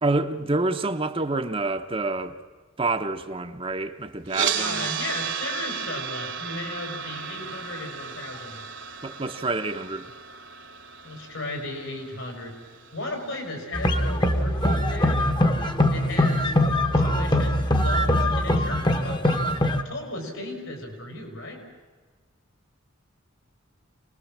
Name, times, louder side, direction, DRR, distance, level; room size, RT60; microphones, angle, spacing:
voice 1, 0.0-2.4 2.8-4.9 9.0-10.1, right 2 dB, 25° right, 0.8 m, -27 dB
sound 1, 4.3-14.4, right 7 dB, 60° right, 1.4 m, -34 dB
voice 2, 4.6-8.7 11.0-12.6 12.9-15.2 15.9-16.5 17.0-19.6 19.8-21.6, left 2 dB, 75° left, 5.2 m, -35 dB
sound 2, 13.7-19.8, left 1 dB, 20° left, 1.1 m, -22 dB
26.0 x 19.5 x 7.4 m
head